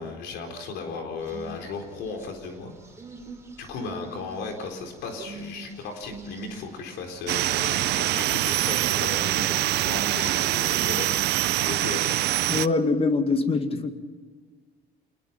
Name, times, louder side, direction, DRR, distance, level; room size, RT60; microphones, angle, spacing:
voice 1, 0.0-2.7 3.6-12.2, left 4 dB, 85° left, 3 dB, 4.3 m, -36 dB
sound 1, 1.2-11.6, right 2 dB, 15° right, 4.1 m, -44 dB
sound 2, 7.3-12.7, right 17 dB, 75° right, 0.6 m, -24 dB
voice 2, 12.5-13.9, left 3 dB, 35° left, 8 dB, 2.0 m, -23 dB
25.5 x 20.0 x 6.0 m, 1.6 s
cardioid pair, 110°, 17 cm